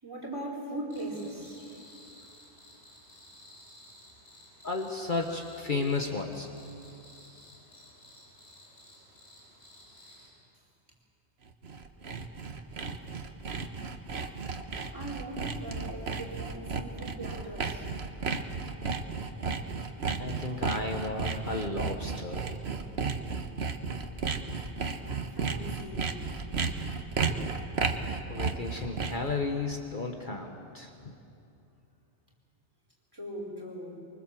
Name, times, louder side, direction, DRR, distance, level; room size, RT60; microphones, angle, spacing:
voice 1, 0.0-1.6 14.9-17.9 25.3-26.2 33.1-34.0, right 1 dB, 20° right, -3 dB, 4.8 m, -40 dB
Cricket, 0.9-10.3, left 1 dB, 65° left, 7.3 m, -54 dB
voice 2, 4.6-6.7 20.2-22.6 28.3-31.2, left 3 dB, 45° left, 3 dB, 1.4 m, -33 dB
Sawing, 11.5-29.3, right 4 dB, 65° right, 1.4 m, -33 dB
24.5 x 23.5 x 7.5 m, 2.8 s
omnidirectional pair, 1.2 m